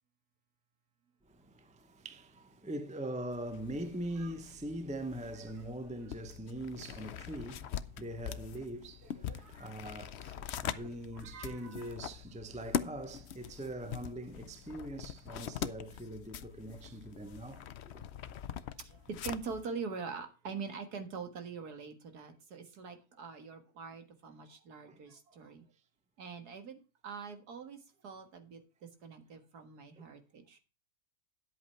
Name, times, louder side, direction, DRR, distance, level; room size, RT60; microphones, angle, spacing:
voice 1, 1.2-17.7 17.9-18.0 24.9-25.0 30.0-30.1, right 1 dB, 5° right, 0.6 m, -42 dB
sound 1, 3.3-19.6, left 9 dB, 60° left, 0.7 m, -43 dB
voice 2, 9.1-9.8 10.6-11.9 18.8-25.7 26.2-27.8 28.0-30.6, right 5 dB, 85° right, 2.1 m, -44 dB
10.5 x 8.2 x 4.3 m
omnidirectional pair, 1.6 m